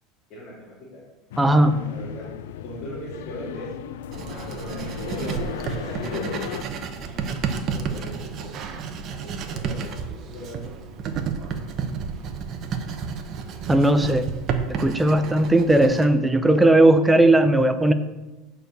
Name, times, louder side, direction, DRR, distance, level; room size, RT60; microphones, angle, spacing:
voice 1, 0.3-1.0 1.5-2.3 2.6-3.7 4.4-6.4 7.6-10.8, left 1 dB, 35° left, -6 dB, 2.5 m, -40 dB
sound 1, 1.3-6.6, left 10 dB, 90° left, 0.4 m, -35 dB
voice 2, 1.4-1.8 13.7-14.2 14.7-17.9, right 1 dB, 5° right, 9 dB, 0.6 m, -17 dB
Writing, 4.1-16.1, right 6 dB, 35° right, 0.9 m, -31 dB
8.7 x 4.5 x 6.7 m, 1.1 s
supercardioid pair, 150°, 0 cm